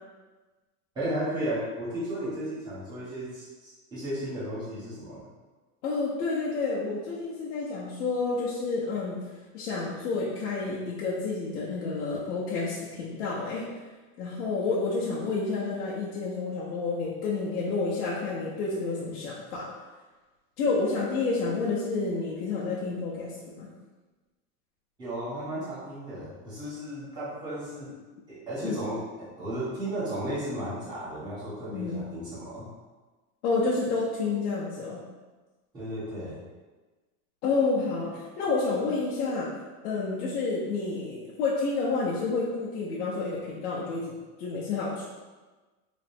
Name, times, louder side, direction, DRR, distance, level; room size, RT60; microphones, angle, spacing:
voice 1, 0.9-5.2 25.0-27.9 28.3-32.7 35.7-36.4, right 1 dB, 10° right, -11 dB, 1.0 m, -34 dB
voice 2, 5.8-9.2 9.5-13.6 14.2-19.7 20.6-23.7 28.6-28.8 31.7-32.0 33.4-35.0 37.4-39.5 39.8-44.1 44.4-45.0, left 3 dB, 75° left, -7 dB, 0.9 m, -29 dB
3.4 x 2.1 x 4.2 m, 1.3 s
supercardioid pair, 180°, 46 cm